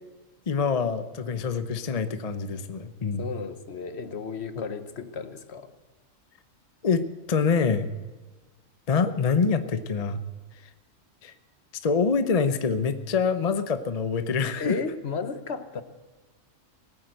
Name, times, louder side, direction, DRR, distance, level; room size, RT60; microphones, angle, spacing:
voice 1, 0.5-3.3 6.8-7.9 8.9-10.2 11.2-11.3 11.8-14.8, left 5 dB, 35° left, 11 dB, 0.7 m, -25 dB
voice 2, 3.2-5.7 14.6-15.8, left 5 dB, 55° left, 11 dB, 1.2 m, -33 dB
18.0 x 9.3 x 7.7 m, 1.3 s
omnidirectional pair, 1.4 m